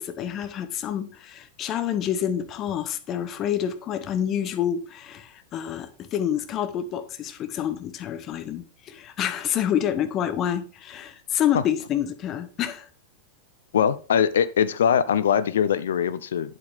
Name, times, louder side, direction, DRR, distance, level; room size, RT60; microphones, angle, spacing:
voice 1, 0.0-12.9, left 10 dB, 30° left, 1.0 m, -28 dB
voice 2, 13.7-16.6, left 8 dB, 65° left, 0.6 m, -22 dB
8.8 x 7.3 x 3.5 m
figure-of-eight pair, 90°, 0 cm